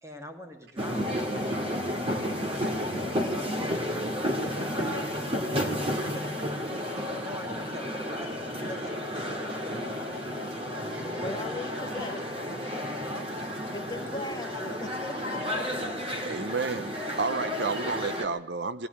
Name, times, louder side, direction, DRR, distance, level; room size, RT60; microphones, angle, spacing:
voice 1, 0.0-1.8 2.3-5.3 5.9-6.5 7.1-10.2 10.8-11.0 12.7-13.3, equal, 15° right, 2.4 m, -44 dB
sound 1, 0.8-18.2, equal, 30° right, 2.4 m, -32 dB
voice 2, 11.0-13.1 13.7-15.7, left 1 dB, 20° left, 1.8 m, -40 dB
voice 3, 16.2-18.9, right 4 dB, 65° right, 0.8 m, -31 dB
20.0 x 14.5 x 9.3 m
head